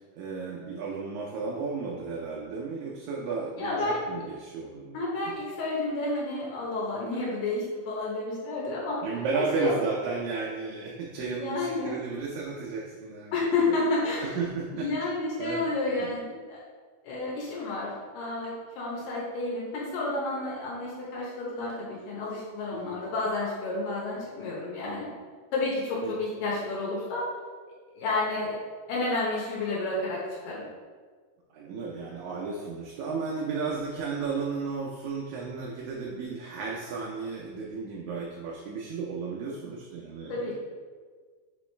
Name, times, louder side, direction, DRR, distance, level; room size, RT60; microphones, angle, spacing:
voice 1, 0.1-5.0 9.0-13.5 14.2-14.9 15.4-15.7 16.0-16.1 22.7-22.9 26.0-26.2 31.5-40.5, right 4 dB, 85° right, -2 dB, 1.7 m, -33 dB
voice 2, 3.6-4.0 4.9-9.0 9.3-9.8 11.2-11.9 13.3-16.6 17.0-25.1 25.5-27.3 27.9-28.6 28.9-30.6 40.3-40.5, left 2 dB, 85° left, -5 dB, 2.5 m, -30 dB
5.5 x 3.0 x 3.2 m, 1.5 s
omnidirectional pair, 3.9 m